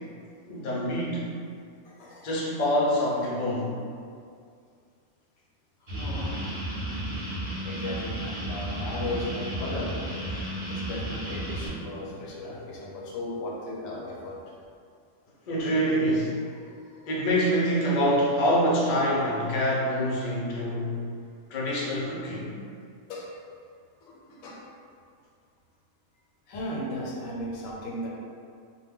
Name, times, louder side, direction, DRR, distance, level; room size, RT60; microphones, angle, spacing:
voice 1, 0.5-1.3 2.2-3.7 10.3-10.5 11.5-12.1 15.5-16.4 17.0-21.0 21.5-22.6, equal, 50° left, -5 dB, 0.5 m, -26 dB
voice 2, 1.8-2.3 3.2-3.3 5.8-6.6 7.6-10.0 10.7-14.4 20.1-20.2 23.1-23.6 24.0-24.6 26.5-28.1, left 1 dB, 80° left, -4 dB, 1.0 m, -36 dB
sound 1, 5.9-11.7, right 1 dB, 45° right, 0.7 m, -33 dB
2.2 x 2.1 x 3.4 m, 2.3 s
omnidirectional pair, 1.4 m